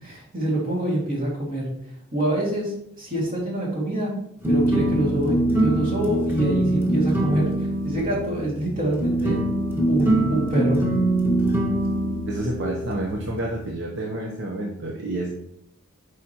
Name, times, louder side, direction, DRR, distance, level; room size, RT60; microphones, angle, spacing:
voice 1, 0.0-1.7 2.1-4.1 4.5-7.5 7.8-9.4 9.9-10.8, right 1 dB, 45° right, -3 dB, 2.2 m, -25 dB
sound 1, 4.4-13.7, right 1 dB, 10° right, 1.2 m, -24 dB
voice 2, 12.2-15.3, right 1 dB, 60° right, -1 dB, 0.9 m, -29 dB
8.1 x 5.0 x 2.9 m, 0.73 s
head